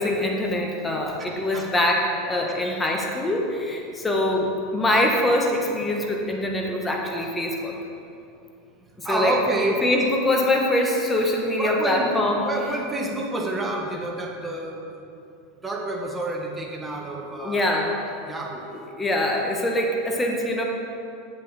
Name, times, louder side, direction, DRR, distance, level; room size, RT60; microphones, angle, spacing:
voice 1, 0.0-7.7 9.0-9.3 9.8-12.5 17.4-18.0 19.0-20.6, left 1 dB, 15° left, 1 dB, 1.4 m, -23 dB
voice 2, 1.2-1.7 2.5-2.6 9.0-9.8 11.6-15.0 15.6-18.6, right 2 dB, 15° right, 0 dB, 1.4 m, -29 dB
8.0 x 7.5 x 4.3 m, 2.6 s
hypercardioid pair, 95°, 0 cm